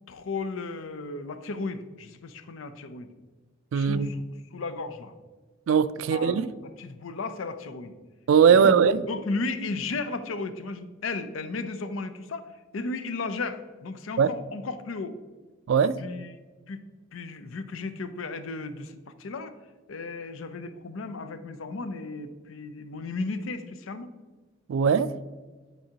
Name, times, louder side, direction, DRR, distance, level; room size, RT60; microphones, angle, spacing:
voice 1, 0.1-3.1 3.7-5.1 6.0-7.9 8.5-15.2 16.0-16.4 16.7-16.8 17.1-19.6 19.9-24.1, left 3 dB, 90° left, 0.5 m, -35 dB
voice 2, 3.7-4.1 5.7-6.5 8.3-9.0 14.2-14.3 15.7-16.0 24.7-25.1, right 7 dB, 75° right, 0.3 m, -20 dB
9.0 x 4.6 x 2.9 m
head